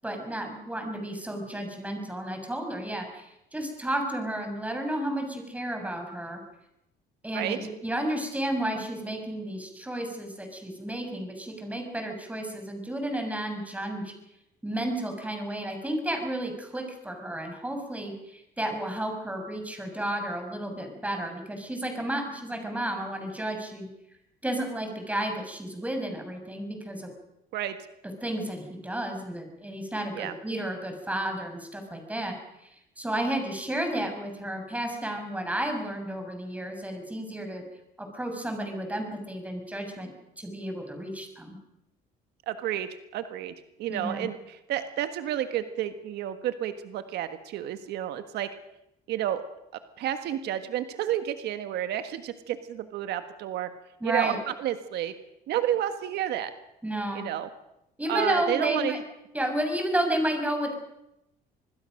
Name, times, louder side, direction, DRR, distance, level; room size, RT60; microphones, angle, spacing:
voice 1, 0.0-6.4 7.2-14.1 14.6-23.9 24.4-27.1 28.2-32.3 33.0-37.6 38.0-41.5 43.9-44.3 54.0-54.4 56.8-57.3 58.0-59.0 59.3-60.7, right 1 dB, 10° right, 4 dB, 6.7 m, -32 dB
voice 2, 42.5-43.5 43.8-48.5 49.1-49.4 50.0-53.7 54.0-54.3 54.6-55.1 55.5-56.5 57.1-57.5 58.1-59.0, right 11 dB, 75° right, 9 dB, 1.5 m, -30 dB
26.0 x 20.5 x 6.5 m, 0.85 s
cardioid pair, 110°, 17 cm